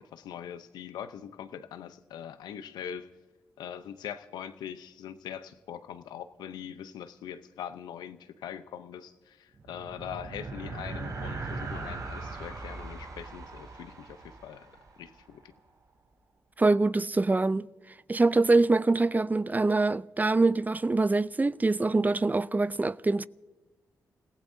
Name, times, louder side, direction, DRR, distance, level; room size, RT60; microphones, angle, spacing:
voice 1, 0.0-3.1 3.6-14.7 15.0-15.5, left 9 dB, 85° left, 0.7 m, -42 dB
sound 1, 9.5-15.3, right 3 dB, 60° right, 3.0 m, -40 dB
voice 2, 16.6-17.7 18.1-23.3, right 3 dB, 25° right, 0.5 m, -24 dB
29.5 x 16.0 x 2.7 m
supercardioid pair, 45°, 7 cm